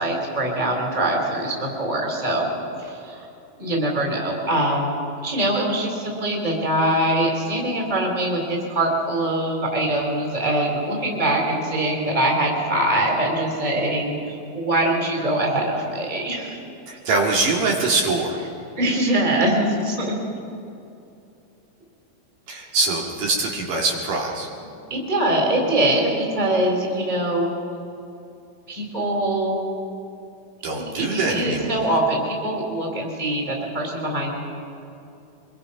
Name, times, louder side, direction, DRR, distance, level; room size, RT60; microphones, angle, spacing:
voice 1, 0.0-2.5 2.8-3.2 3.6-4.9 5.2-14.2 14.5-16.6 18.8-20.1 24.9-27.5 28.7-29.6 30.7-34.3, right 1 dB, 10° right, -1 dB, 3.6 m, -23 dB
voice 2, 16.9-18.4 22.5-24.5 30.6-31.9, right 3 dB, 60° right, -2 dB, 3.5 m, -23 dB
25.0 x 23.0 x 5.8 m, 2.6 s
omnidirectional pair, 4.4 m